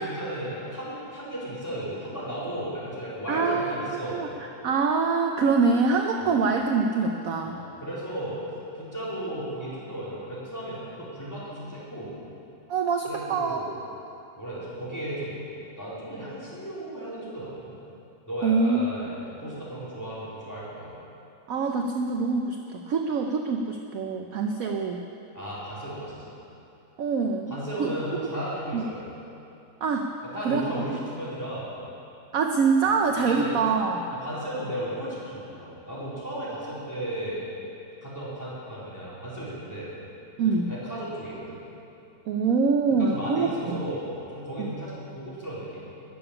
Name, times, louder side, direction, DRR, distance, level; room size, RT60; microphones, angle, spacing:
voice 1, 0.0-4.2 6.2-6.4 7.5-8.4 8.7-12.2 13.1-13.7 14.4-15.4 15.8-17.8 18.3-21.0 25.3-26.4 27.5-29.0 30.2-31.7 32.8-33.6 34.1-37.5 38.0-39.9 40.7-41.6 42.9-45.8, right 1 dB, 10° left, -10 dB, 4.1 m, -35 dB
voice 2, 3.3-4.3 4.6-7.6 12.7-13.6 18.4-18.8 21.5-25.0 27.0-27.9 28.7-28.8 29.8-30.1 30.4-31.0 32.3-34.1 40.4-40.7 42.3-43.8 44.6-44.7, right 4 dB, 65° right, 3 dB, 1.0 m, -25 dB
13.5 x 6.9 x 9.8 m, 2.8 s
omnidirectional pair, 1.9 m